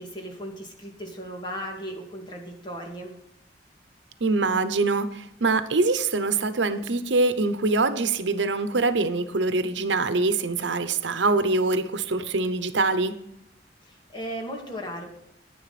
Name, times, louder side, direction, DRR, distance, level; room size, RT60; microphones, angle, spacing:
voice 1, 0.0-3.2 13.8-15.1, equal, 25° left, 1 dB, 2.3 m, -36 dB
voice 2, 4.2-13.2, right 3 dB, 90° right, 12 dB, 0.8 m, -24 dB
10.5 x 10.0 x 4.2 m, 0.79 s
head